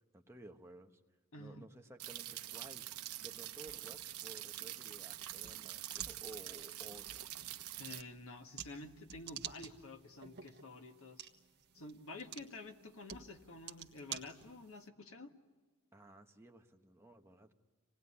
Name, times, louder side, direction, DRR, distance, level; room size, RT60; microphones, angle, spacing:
voice 1, 0.1-0.9 1.4-7.2 15.9-17.5, right 2 dB, 10° right, 3 dB, 1.2 m, -55 dB
voice 2, 1.3-1.7 7.8-11.3 11.7-15.3, left 2 dB, 65° left, 5 dB, 1.6 m, -50 dB
sound 1, 2.0-8.0, right 13 dB, 85° right, 0.9 m, -46 dB
sound 2, 2.8-14.9, right 9 dB, 50° right, 1.4 m, -52 dB
26.5 x 19.0 x 9.8 m, 1.3 s
head